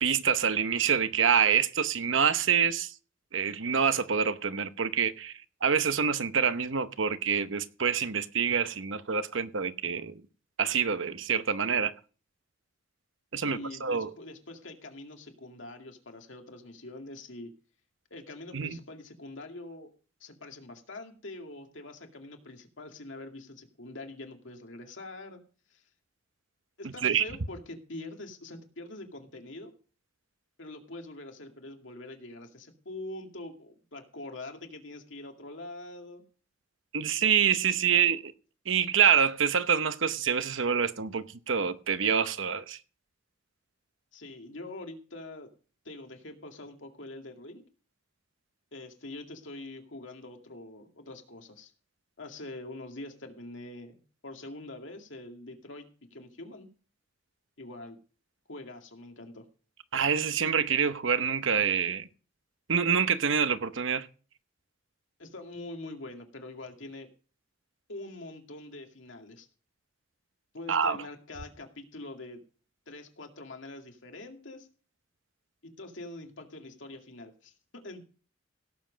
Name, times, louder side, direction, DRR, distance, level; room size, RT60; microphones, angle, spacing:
voice 1, 0.0-2.9 3.3-5.3 5.6-10.2 10.6-11.9 13.3-14.1 18.5-18.8 26.8-27.2 36.9-38.3 38.7-42.8 59.9-62.1 62.7-64.1 70.7-71.0, right 7 dB, 80° right, 0.9 m, -26 dB
voice 2, 13.4-17.5 18.1-19.9 20.2-25.4 25.7-25.8 26.8-29.7 30.6-36.2 37.9-38.2 44.1-45.5 45.8-47.6 48.7-51.7 52.2-56.7 57.6-58.0 58.5-59.5 65.2-67.1 67.9-69.5 70.5-72.4 72.9-74.7 75.6-78.0, left 2 dB, 75° left, 2.3 m, -44 dB
17.0 x 7.4 x 5.1 m
head